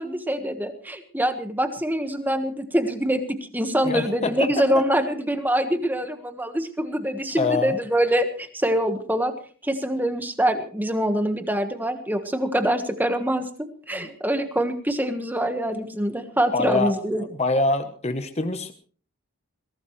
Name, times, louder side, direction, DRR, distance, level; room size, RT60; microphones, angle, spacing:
voice 1, 0.0-9.3 9.6-17.2, right 1 dB, 10° right, 8 dB, 1.4 m, -25 dB
voice 2, 3.8-4.5 7.4-7.7 13.9-14.1 16.5-18.7, left 3 dB, 30° left, 8 dB, 1.0 m, -25 dB
22.0 x 17.0 x 3.2 m, 0.42 s
head